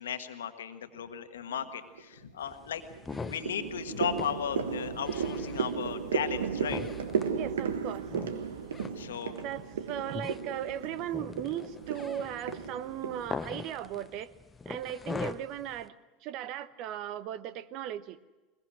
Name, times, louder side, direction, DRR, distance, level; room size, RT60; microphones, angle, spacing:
voice 1, 0.0-2.8 3.2-6.8 8.9-9.3, left 8 dB, 80° left, 8 dB, 1.5 m, -36 dB
sound 1, 1.5-2.0 2.5-13.2, right 6 dB, 80° right, 1.4 m, -35 dB
sound 2, 2.4-15.9, left 4 dB, 20° left, 0.9 m, -43 dB
voice 2, 7.3-8.1 9.4-14.3 14.7-15.9 16.2-18.2, right 11 dB, 55° right, 15 dB, 0.9 m, -37 dB
21.5 x 21.0 x 6.3 m, 1.1 s
hypercardioid pair, 85°, 0 cm